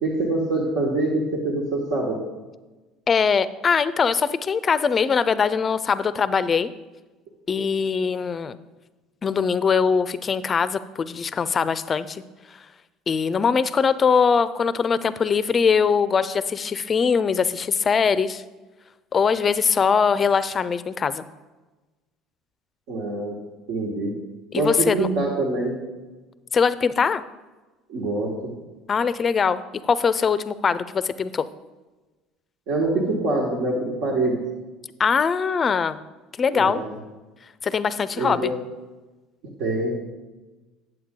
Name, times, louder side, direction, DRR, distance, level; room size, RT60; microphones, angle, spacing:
voice 1, 0.0-2.2 22.9-23.4 23.7-24.1 24.6-25.8 27.9-28.5 32.7-34.4 36.5-36.9 38.1-38.6 39.6-40.0, right 2 dB, 70° right, -1 dB, 1.6 m, -25 dB
voice 2, 3.1-6.7 7.5-8.6 9.2-12.2 12.5-12.6 13.1-18.4 19.1-21.2 24.5-25.1 26.5-27.2 28.9-31.5 35.0-36.0 36.4-36.8 37.6-38.5, left 6 dB, 35° left, 15 dB, 0.4 m, -22 dB
8.6 x 7.7 x 3.7 m, 1.2 s
hypercardioid pair, 70°, 0 cm